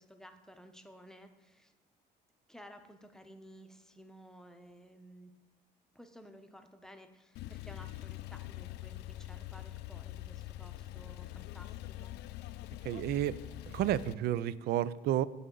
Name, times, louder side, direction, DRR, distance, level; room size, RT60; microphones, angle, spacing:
voice 1, 0.0-1.7 2.5-5.3 5.9-12.1, equal, 5° left, 6 dB, 0.8 m, -55 dB
Male speech man speaking / Car / Idling, 7.4-14.1, left 15 dB, 80° left, 0.4 m, -44 dB
voice 2, 12.8-13.4 13.7-15.3, right 12 dB, 70° right, 17 dB, 0.4 m, -31 dB
16.0 x 5.4 x 3.8 m, 1.2 s
cardioid pair, 110°, 17 cm